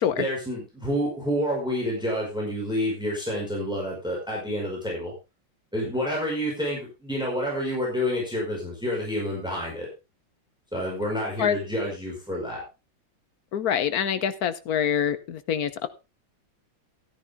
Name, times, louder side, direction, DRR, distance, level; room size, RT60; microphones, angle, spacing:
voice 1, 0.2-5.1 5.7-9.9 10.7-12.6, equal, ahead, -3 dB, 5.2 m, -28 dB
voice 2, 13.5-15.9, left 8 dB, 55° left, 12 dB, 1.3 m, -25 dB
13.5 x 10.5 x 3.6 m, 0.27 s
omnidirectional pair, 2.1 m